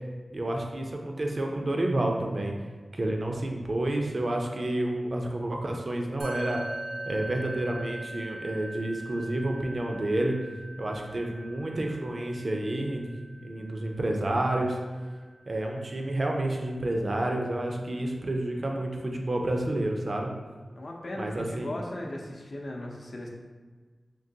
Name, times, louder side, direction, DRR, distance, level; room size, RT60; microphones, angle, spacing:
voice 1, 0.3-2.6 2.9-6.6 7.1-10.4 10.8-13.1 13.4-14.8 15.5-20.3 21.2-21.7, right 1 dB, 55° right, 1 dB, 0.5 m, -29 dB
Musical instrument, 6.2-15.7, right 1 dB, 90° right, 0.7 m, -42 dB
voice 2, 20.8-23.3, left 1 dB, 65° left, -1 dB, 0.6 m, -37 dB
3.7 x 2.9 x 2.7 m, 1.4 s
wide cardioid pair, 60°, 0 cm